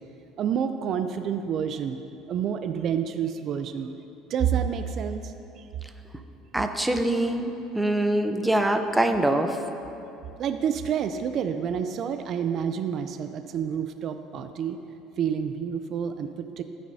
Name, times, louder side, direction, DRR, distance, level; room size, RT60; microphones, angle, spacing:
voice 1, 0.4-2.0 2.3-3.9 4.3-5.7 10.4-14.8 15.2-16.6, right 8 dB, 50° right, 9 dB, 0.4 m, -28 dB
voice 2, 6.5-9.6, right 1 dB, 5° right, 6 dB, 0.6 m, -24 dB
14.5 x 8.5 x 2.7 m, 2.8 s
supercardioid pair, 110°, 0 cm